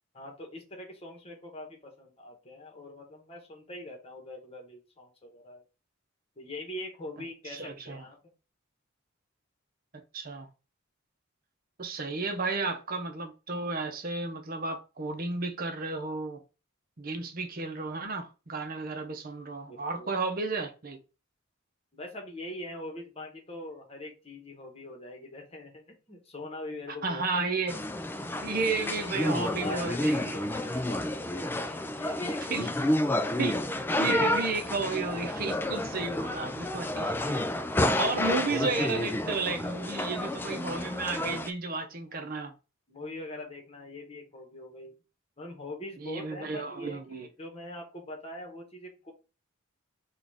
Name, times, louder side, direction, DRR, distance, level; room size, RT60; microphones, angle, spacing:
voice 1, 0.1-5.6 6.4-8.3 19.7-20.1 21.9-27.8 28.2-28.3 28.6-33.3 42.1-42.3 42.9-44.9 45.4-49.1, left 1 dB, 30° left, 1.3 m, -43 dB
voice 2, 7.5-8.0 10.1-10.5 11.8-16.4 17.0-21.0 27.0-27.8 28.4-30.4 32.2-32.7 33.4-33.6 34.0-37.4 38.0-42.5 46.0-47.3, right 3 dB, 45° right, 0.8 m, -33 dB
sound 1, 27.7-41.5, left 1 dB, 10° left, 0.3 m, -30 dB
5.8 x 2.5 x 3.5 m
head